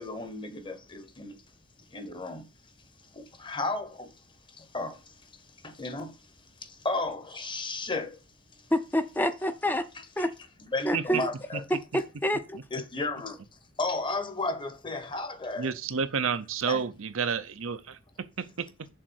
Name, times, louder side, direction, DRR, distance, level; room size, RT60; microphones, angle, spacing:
voice 1, 0.0-1.4 1.9-2.5 3.1-4.1 4.6-5.0 5.6-6.1 6.6-8.2 10.7-11.6 12.7-13.4 13.8-15.7 16.7-16.8, left 2 dB, 25° left, 0.9 m, -33 dB
voice 2, 8.7-9.9 10.2-10.3 10.8-11.3 11.7-12.6, equal, 10° left, 0.5 m, -28 dB
voice 3, 15.6-18.9, right 6 dB, 85° right, 0.7 m, -31 dB
6.5 x 3.7 x 6.3 m
head